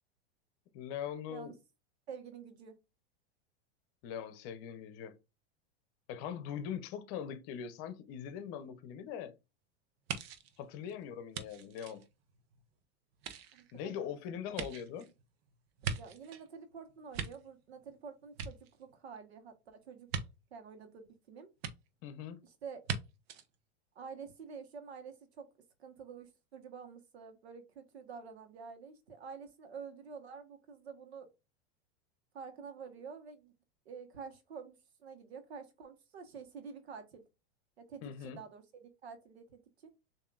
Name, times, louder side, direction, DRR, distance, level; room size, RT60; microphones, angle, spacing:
voice 1, 0.7-1.5 4.0-5.1 6.1-9.3 10.6-12.0 13.7-15.1 22.0-22.4 38.0-38.4, left 8 dB, 45° left, 0.8 m, -41 dB
voice 2, 2.1-2.7 13.5-14.6 16.0-20.2 20.5-21.5 22.4-22.8 23.9-25.5 25.8-31.3 32.3-33.5 33.8-37.2 37.8-39.6, right 6 dB, 90° right, 1.3 m, -49 dB
sound 1, 10.1-12.7 13.1-16.5 16.9-18.0 18.3-19.2 20.1-20.3 21.6-21.7 22.8-23.0 23.3-23.5, right 6 dB, 70° right, 0.9 m, -41 dB
6.8 x 2.8 x 2.4 m
supercardioid pair, 125°, 31 cm